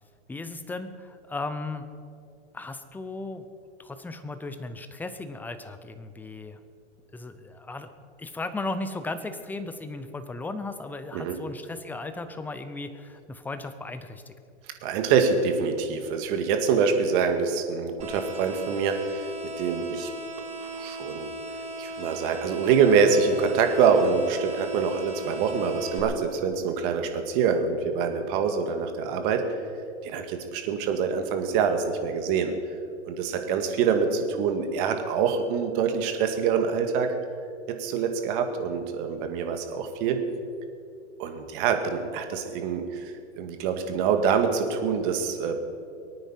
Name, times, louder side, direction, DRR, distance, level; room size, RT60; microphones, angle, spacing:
voice 1, 0.3-1.9 2.5-3.5 3.8-6.6 7.1-7.9 8.2-14.3, left 2 dB, 5° left, 10 dB, 0.6 m, -36 dB
voice 2, 14.8-19.3 19.6-20.1 20.6-21.3 21.8-29.6 30.0-32.5 33.0-37.1 37.7-40.2 41.2-43.0 43.4-45.6, right 6 dB, 45° right, 6 dB, 2.0 m, -25 dB
sound 1, 18.0-26.0, right 2 dB, 20° right, 2.7 m, -37 dB
23.5 x 9.2 x 5.7 m, 2.4 s
hypercardioid pair, 135°, 36 cm